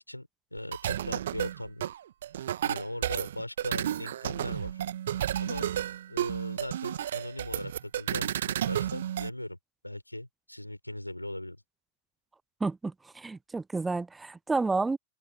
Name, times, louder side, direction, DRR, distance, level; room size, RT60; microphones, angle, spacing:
voice 1, 0.0-1.8 2.6-4.8 5.4-5.7 6.1-9.6 9.8-11.6, left 1 dB, 85° left, 5.1 m, -39 dB
sound 1, 0.6-9.3, right 11 dB, 60° right, 1.4 m, -32 dB
voice 2, 12.6-15.0, right 3 dB, 10° right, 0.6 m, -30 dB
figure-of-eight pair, 90°, 0 cm